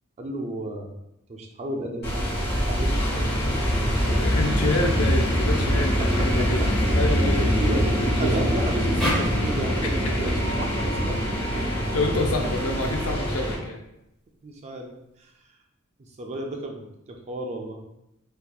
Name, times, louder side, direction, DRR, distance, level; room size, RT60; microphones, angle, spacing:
voice 1, 0.2-0.9 1.3-2.1 2.6-4.4 5.7-6.3 7.3-11.2 11.5-11.6 14.4-14.9 15.2-15.3 16.0-17.8, right 1 dB, 30° right, 2 dB, 0.3 m, -33 dB
sound 1, 2.0-13.6, equal, 50° left, 1.1 m, -24 dB
voice 2, 4.1-6.6 6.9-8.4 9.8-9.9 10.8-10.9 11.5-13.8, left 2 dB, 85° left, 3 dB, 0.5 m, -28 dB
sound 2, 9.0-12.2, equal, ahead, 0.7 m, -33 dB
2.8 x 2.3 x 2.2 m, 0.85 s
head